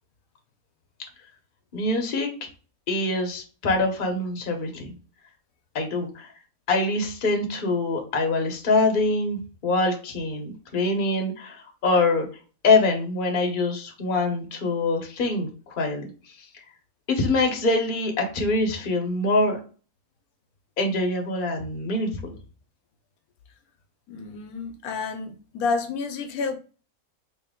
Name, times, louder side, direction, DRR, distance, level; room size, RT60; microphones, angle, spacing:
voice 1, 1.7-2.3 2.9-4.9 5.7-6.3 6.7-12.3 12.6-16.1 17.1-19.6 20.8-22.3, left 2 dB, 40° left, 0.9 m, -24 dB
voice 2, 24.1-26.6, left 4 dB, 80° left, 1.1 m, -29 dB
3.2 x 2.9 x 3.6 m
omnidirectional pair, 1.5 m